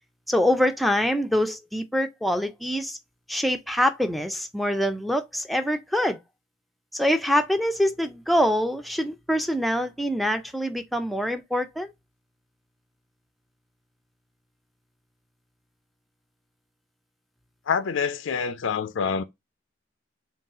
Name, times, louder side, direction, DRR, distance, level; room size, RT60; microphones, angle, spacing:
voice 1, 0.3-3.0 3.3-6.2 6.9-11.9, equal, ahead, 0.4 m, -25 dB
voice 2, 17.7-19.2, left 6 dB, 80° left, 0.4 m, -26 dB
3.9 x 2.3 x 3.7 m
head